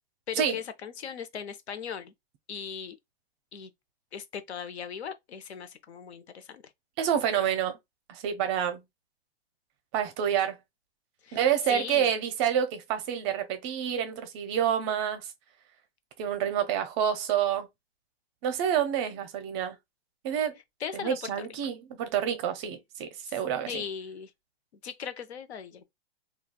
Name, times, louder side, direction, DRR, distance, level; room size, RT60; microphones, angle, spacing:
voice 1, 0.3-2.1 2.5-3.0 3.5-3.7 4.1-6.6 11.2-11.4 11.7-12.1 20.8-21.5 23.3-23.4 23.7-24.3 24.8-25.8, left 7 dB, 85° left, 0.7 m, -38 dB
voice 2, 7.0-7.8 8.1-8.8 9.9-10.6 11.3-15.3 16.2-17.7 18.4-19.8 20.2-20.5 20.9-23.8, right 9 dB, 30° right, 0.5 m, -28 dB
3.3 x 2.3 x 2.2 m
hypercardioid pair, 135°, 32 cm